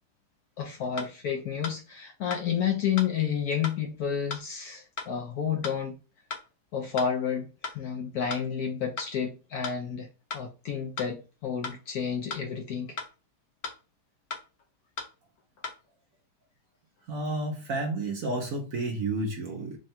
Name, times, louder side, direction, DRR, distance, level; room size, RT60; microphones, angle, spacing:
voice 1, 0.6-6.0 6.7-7.5 7.7-10.1 10.3-13.0, left 8 dB, 70° left, 0.9 m, -30 dB
sound 1, 1.0-1.1 1.6-1.8 2.3-2.4 3.0-3.1 3.6-3.8 4.3-4.4 5.0-5.1 5.6-5.8 6.3-6.4 7.0-7.1 7.6-7.8 8.3-8.4 9.0-9.1 9.6-9.8 10.3-10.4 11.0-11.1 11.6-11.8 12.3-12.4 13.0-13.1 13.6-13.8 14.3-14.4 15.0-15.1 15.6-15.8, left 4 dB, 90° left, 0.5 m, -36 dB
voice 2, 17.1-19.8, right 2 dB, 65° right, 0.8 m, -31 dB
3.6 x 2.2 x 4.1 m
omnidirectional pair, 2.1 m